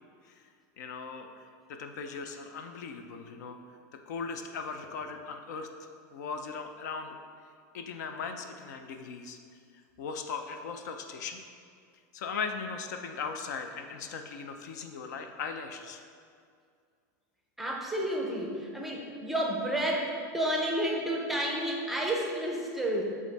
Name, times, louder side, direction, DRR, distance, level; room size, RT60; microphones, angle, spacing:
voice 1, 0.8-1.4 1.7-3.6 4.1-7.2 7.7-9.4 10.0-11.4 12.1-16.0, left 5 dB, 70° left, 6 dB, 0.5 m, -38 dB
voice 2, 17.6-23.0, right 1 dB, ahead, -2 dB, 0.6 m, -31 dB
7.3 x 3.7 x 4.0 m, 2.2 s
supercardioid pair, 165°, 10 cm